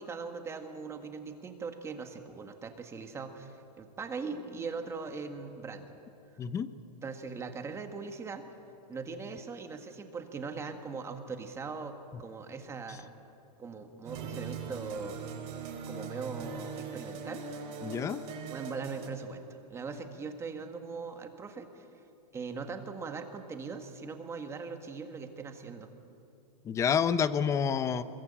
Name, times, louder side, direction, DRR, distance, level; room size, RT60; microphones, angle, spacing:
voice 1, 0.0-5.9 7.0-8.4 8.9-13.1 13.6-15.2 15.9-17.6 18.5-21.9 22.3-25.9, right 4 dB, 15° right, 6 dB, 1.7 m, -40 dB
voice 2, 6.4-6.7 17.8-18.2 26.6-28.0, left 7 dB, 15° left, 14 dB, 0.7 m, -28 dB
sound 1, 14.0-19.1, right 5 dB, 30° right, 4.2 m, -41 dB
25.5 x 22.5 x 8.8 m, 2.8 s
supercardioid pair, 160°, 21 cm